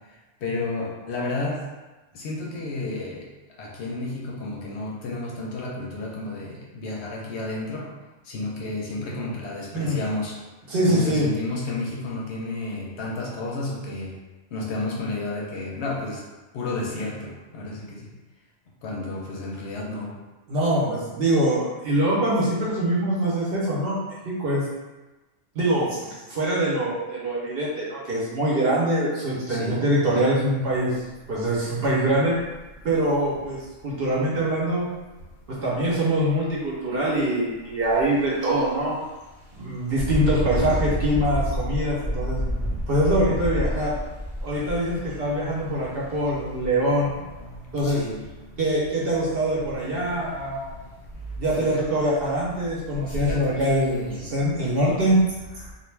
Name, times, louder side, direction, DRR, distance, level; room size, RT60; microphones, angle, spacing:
voice 1, 0.4-1.6 2.1-3.3 3.6-7.9 8.3-10.4 10.9-14.2 14.5-16.2 16.5-18.1 18.8-20.1 29.5-29.9 41.5-43.8 44.6-44.7 45.9-48.6 49.7-50.4 50.8-50.9 51.6-51.9 53.0-54.4, left 2 dB, 70° left, -3 dB, 0.8 m, -32 dB
voice 2, 10.7-11.3 20.5-24.6 25.5-31.0 31.3-32.3 32.8-34.9 35.6-38.9 39.5-42.4 42.9-43.9 44.4-47.1 47.7-48.0 48.6-50.7 51.4-55.2 55.5-55.7, right 1 dB, 60° right, -6 dB, 0.8 m, -24 dB
Engine, 37.8-38.0 38.5-38.7 39.9-45.7 46.6-46.7 47.1-47.8 49.6-49.7 50.1-50.2 50.7-50.8 51.1-51.6 52.2-52.3 52.9-53.3, equal, 5° right, 0.8 m, -29 dB
2.4 x 2.1 x 3.1 m, 1.1 s
omnidirectional pair, 1.3 m